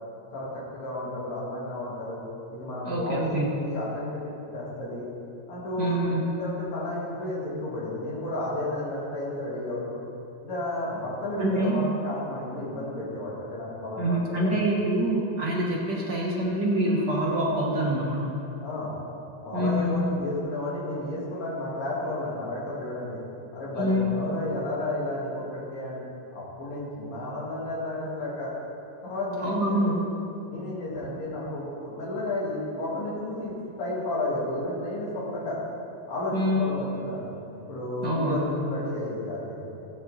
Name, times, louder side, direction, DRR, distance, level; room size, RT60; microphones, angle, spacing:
voice 1, 0.3-2.2 2.5-4.2 4.5-5.1 5.5-6.0 6.4-10.0 10.4-14.5 18.6-18.9 19.4-23.2 23.5-26.0 26.3-28.5 29.0-29.8 30.5-33.5 33.8-35.6 36.1-37.2 37.6-39.6, left 1 dB, 65° left, -7 dB, 4.1 m, -32 dB
voice 2, 2.8-3.5 5.8-6.2 11.4-11.8 14.0-18.3 19.5-20.0 23.8-24.1 29.4-30.0 36.3-36.6 38.0-38.6, right 1 dB, 45° right, -4 dB, 1.6 m, -26 dB
16.0 x 8.9 x 4.3 m, 2.7 s
omnidirectional pair, 3.4 m